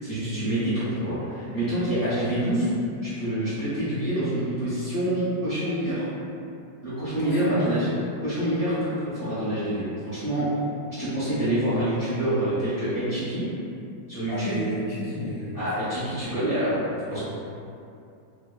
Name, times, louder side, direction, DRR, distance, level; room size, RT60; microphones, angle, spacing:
voice 1, 0.0-2.7 3.0-6.0 6.8-7.9 8.2-10.5 11.0-13.5 14.1-14.6 15.5-16.8 17.1-17.2, right 1 dB, 40° right, -14 dB, 0.9 m, -26 dB
voice 2, 7.2-7.8 14.3-15.7 17.1-17.2, equal, 75° left, -8 dB, 1.5 m, -31 dB
3.4 x 2.1 x 2.3 m, 2.5 s
omnidirectional pair, 2.1 m